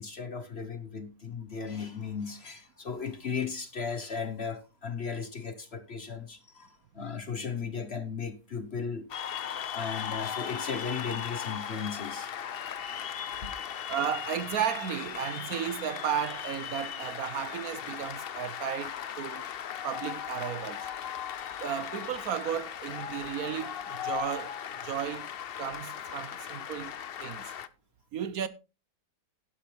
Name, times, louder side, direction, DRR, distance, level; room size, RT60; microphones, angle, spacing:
voice 1, 0.0-9.1 9.7-12.3, left 5 dB, 45° left, 1.1 m, -36 dB
sound 1, 1.6-3.5 7.6-8.6 13.6-13.7 14.5-17.9, right 4 dB, ahead, 4.2 m, -58 dB
Cheering / Applause, 9.1-27.7, left 9 dB, 85° left, 0.5 m, -38 dB
voice 2, 13.9-19.4 19.8-20.9 21.6-24.6 24.8-25.3 25.6-26.9 27.2-27.5 28.1-28.5, right 9 dB, 65° right, 1.0 m, -34 dB
11.5 x 11.0 x 3.3 m
omnidirectional pair, 1.8 m